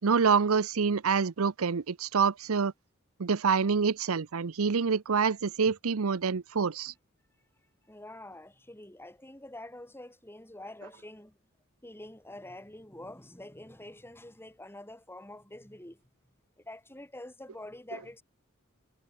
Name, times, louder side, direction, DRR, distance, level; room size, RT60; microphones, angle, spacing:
voice 1, 0.0-2.7 3.2-6.9, right 5 dB, 80° right, 0.7 m, -26 dB
voice 2, 7.9-11.4 11.8-16.0 16.6-18.2, left 1 dB, 10° left, 4.5 m, -46 dB
head